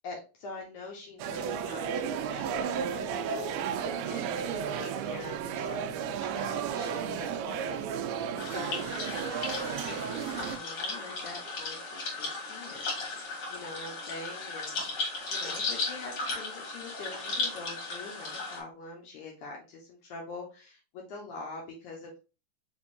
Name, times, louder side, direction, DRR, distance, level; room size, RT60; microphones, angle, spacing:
voice 1, 0.0-7.8 8.5-8.9 9.5-22.2, left 3 dB, 70° left, -1 dB, 2.1 m, -44 dB
sound 1, 1.2-10.6, right 7 dB, 85° right, 1.8 m, -33 dB
sound 2, 8.4-18.6, left 3 dB, 50° left, 2.4 m, -36 dB
5.1 x 3.5 x 2.6 m, 0.32 s
omnidirectional pair, 3.9 m